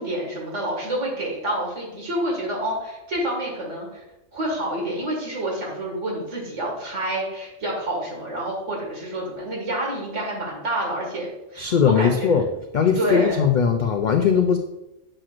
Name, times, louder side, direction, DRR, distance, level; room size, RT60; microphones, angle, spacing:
voice 1, 0.0-4.0 4.3-12.4 13.0-13.4, right 1 dB, 70° right, -3 dB, 2.3 m, -28 dB
voice 2, 11.6-12.4 12.7-14.6, left 7 dB, 75° left, 5 dB, 0.4 m, -19 dB
7.6 x 6.0 x 2.5 m, 0.94 s
omnidirectional pair, 1.3 m